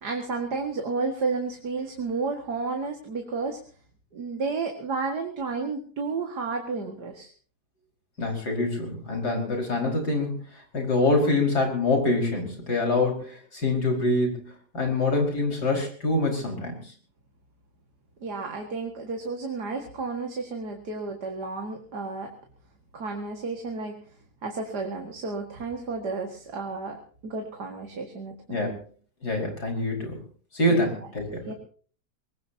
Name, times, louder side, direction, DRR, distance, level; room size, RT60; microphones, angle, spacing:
voice 1, 0.0-3.6 4.1-7.3 18.2-22.3 22.9-24.0 24.4-27.0 27.2-28.7 30.7-30.9 31.5-31.6, right 4 dB, 70° right, 2 dB, 2.5 m, -32 dB
voice 2, 8.2-10.3 10.7-16.8 28.5-28.7 29.2-30.2 30.5-31.4, left 2 dB, 70° left, 2 dB, 5.7 m, -25 dB
24.5 x 20.0 x 2.8 m, 0.42 s
omnidirectional pair, 1.8 m